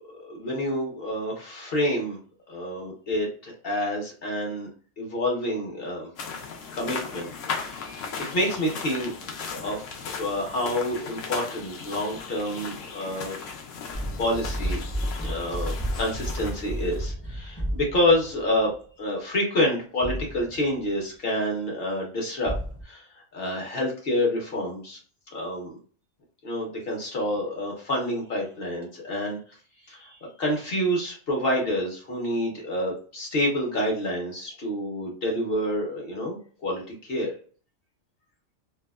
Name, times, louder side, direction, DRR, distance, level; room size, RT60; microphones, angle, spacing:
voice 1, 0.1-2.2 2.5-4.7 5.0-6.1 6.7-8.0 8.3-9.1 9.5-13.4 14.2-14.8 15.2-22.5 22.8-23.0 23.3-25.0 25.3-25.8 26.4-29.4 29.9-37.3, left 1 dB, 55° left, -1 dB, 1.0 m, -28 dB
sound 1, 6.2-17.1, left 5 dB, 80° left, 1.0 m, -37 dB
sound 2, 13.9-18.6 20.0-20.9 22.4-22.8, equal, 15° left, 0.3 m, -32 dB
2.7 x 2.2 x 2.2 m, 0.43 s
omnidirectional pair, 1.3 m